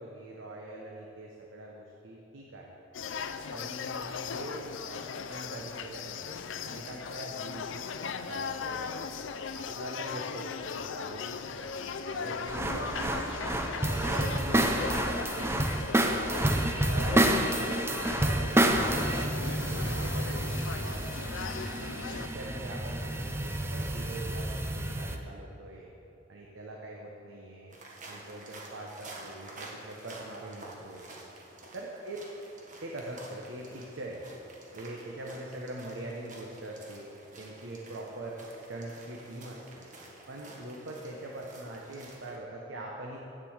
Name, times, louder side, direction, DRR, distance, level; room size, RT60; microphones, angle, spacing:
voice 1, 0.0-2.8 3.5-7.9 8.3-9.2 9.5-13.2 13.9-15.6 16.9-17.3 17.6-21.3 21.8-25.9 26.3-27.8 28.0-31.1 31.7-32.2 32.8-34.4 34.7-37.1 37.4-38.4 38.7-39.9 40.3-43.2, right 1 dB, 80° right, -2 dB, 1.1 m, -43 dB
sound 1, 2.9-22.3, left 5 dB, 75° left, 0.5 m, -38 dB
sound 2, 12.5-25.2, right 1 dB, 15° right, 0.5 m, -29 dB
sound 3, 27.7-42.4, right 2 dB, 45° right, 1.5 m, -50 dB
8.5 x 7.5 x 7.3 m, 2.8 s
head